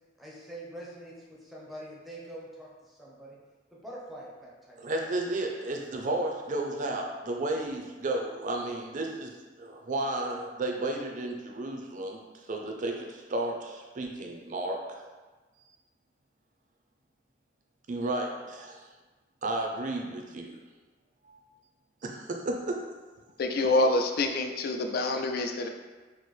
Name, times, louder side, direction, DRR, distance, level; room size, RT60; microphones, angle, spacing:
voice 1, 0.2-3.4 3.7-4.8, right 1 dB, ahead, -5 dB, 0.6 m, -44 dB
voice 2, 4.8-9.3 9.6-15.0 17.9-18.8 19.4-20.6 21.2-21.4 22.0-22.8, right 2 dB, 45° right, 2 dB, 0.4 m, -33 dB
voice 3, 23.4-25.7, left 2 dB, 55° left, 5 dB, 0.3 m, -26 dB
4.3 x 2.1 x 3.1 m, 1.3 s
head